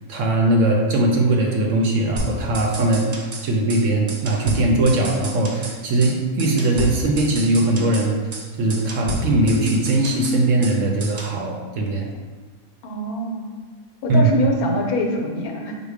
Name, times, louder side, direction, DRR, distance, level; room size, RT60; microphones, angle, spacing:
voice 1, 0.1-3.1 3.4-8.2 8.6-12.1 14.1-14.3, right 2 dB, 65° right, 1 dB, 0.9 m, -20 dB
sound 1, 2.2-3.4 3.7-3.8 4.1-5.8 6.0-6.1 6.4-8.1 8.3-8.4 8.7-10.7 11.0-11.3, right 1 dB, 85° right, 0.3 m, -30 dB
voice 2, 12.8-13.5 14.0-15.8, left 1 dB, 80° left, 1 dB, 1.2 m, -24 dB
5.0 x 2.2 x 4.8 m, 1.4 s
omnidirectional pair, 1.6 m